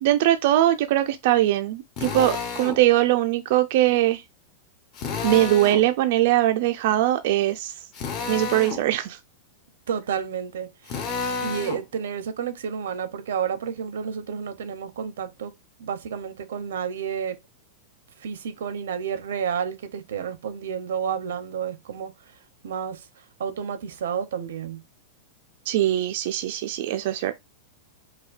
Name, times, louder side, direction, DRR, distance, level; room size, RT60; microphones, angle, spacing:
voice 1, 0.0-4.2 5.2-7.7 8.3-9.2 25.7-27.3, right 14 dB, 45° right, 0.3 m, -21 dB
Drill, 2.0-2.8 4.9-5.9 7.9-8.8 10.9-11.8, left 5 dB, 25° left, 0.7 m, -30 dB
voice 2, 9.9-11.0 11.4-15.5 15.8-17.4 18.2-22.1 22.6-23.1 23.4-24.8, right 7 dB, 90° right, 0.6 m, -30 dB
4.9 x 2.2 x 2.4 m
supercardioid pair, 175°, 0 cm